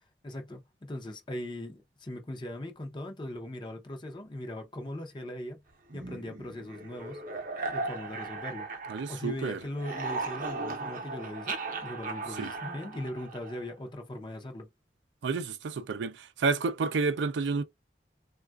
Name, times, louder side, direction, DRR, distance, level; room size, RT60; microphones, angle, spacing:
voice 1, 0.2-5.6 5.9-7.2 7.7-8.7 9.1-14.7, left 1 dB, 25° left, 0.5 m, -39 dB
sound 1, 5.9-9.4 9.7-13.7, right 3 dB, 45° right, 0.7 m, -37 dB
voice 2, 8.9-9.6 12.4-12.5 15.2-17.6, right 4 dB, 80° right, 0.4 m, -30 dB
3.4 x 2.3 x 2.3 m
head